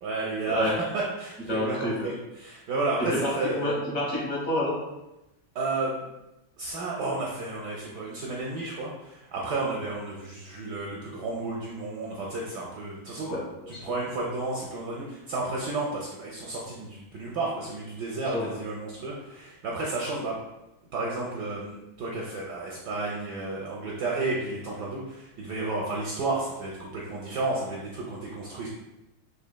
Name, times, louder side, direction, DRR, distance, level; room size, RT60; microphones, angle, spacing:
voice 1, 0.0-3.6 5.5-6.1 6.6-13.3 13.7-20.4 20.9-28.7, right 2 dB, 70° right, -3 dB, 1.0 m, -32 dB
voice 2, 1.5-2.1 3.0-4.7 13.3-13.8 18.3-18.5, left 1 dB, 40° left, -5 dB, 1.1 m, -29 dB
5.2 x 2.9 x 2.2 m, 0.95 s
omnidirectional pair, 2.3 m